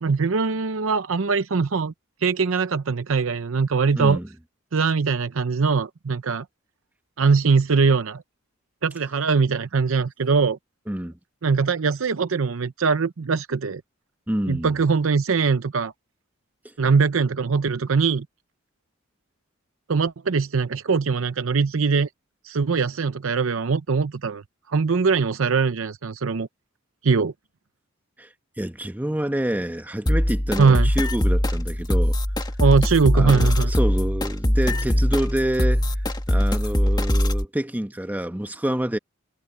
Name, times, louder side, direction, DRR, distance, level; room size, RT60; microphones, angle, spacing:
voice 1, 0.0-1.9 2.2-4.2 4.7-6.5 7.2-8.2 8.8-10.6 11.4-13.8 14.5-15.9 16.8-18.3 19.9-22.1 22.4-24.4 24.7-26.5 27.0-27.3 30.6-30.9 32.6-33.7, right 5 dB, 70° right, 0.7 m, -21 dB
voice 2, 3.9-4.3 10.9-11.1 14.3-14.7 28.2-28.3 28.6-32.2 33.1-35.9 36.3-39.0, right 1 dB, 10° right, 1.0 m, -27 dB
sound 1, 30.1-37.4, equal, 20° left, 1.7 m, -22 dB
head